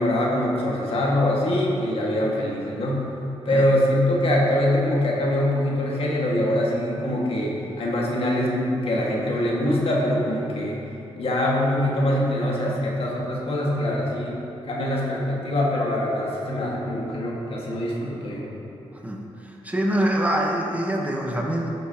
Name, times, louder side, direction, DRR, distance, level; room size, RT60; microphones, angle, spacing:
voice 1, 0.0-3.0 3.5-18.5, left 1 dB, 60° left, -3 dB, 1.7 m, -24 dB
voice 2, 18.9-21.7, right 1 dB, 15° right, 0 dB, 1.0 m, -25 dB
12.0 x 6.5 x 2.9 m, 2.9 s
cardioid pair, 65°, 11 cm